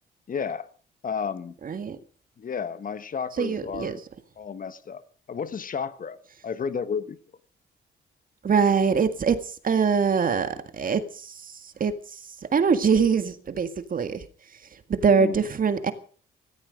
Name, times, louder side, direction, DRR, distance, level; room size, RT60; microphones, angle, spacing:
voice 1, 0.3-0.7 1.0-1.6 2.4-4.0 4.4-5.0 5.3-6.2 6.4-7.2 15.1-15.4, left 6 dB, 45° left, 1.3 m, -32 dB
voice 2, 1.6-2.0 3.4-4.0 8.4-12.2 12.5-14.2 14.7-15.9, right 6 dB, 45° right, 1.9 m, -24 dB
16.5 x 15.0 x 5.1 m
cardioid pair, 90°, 20 cm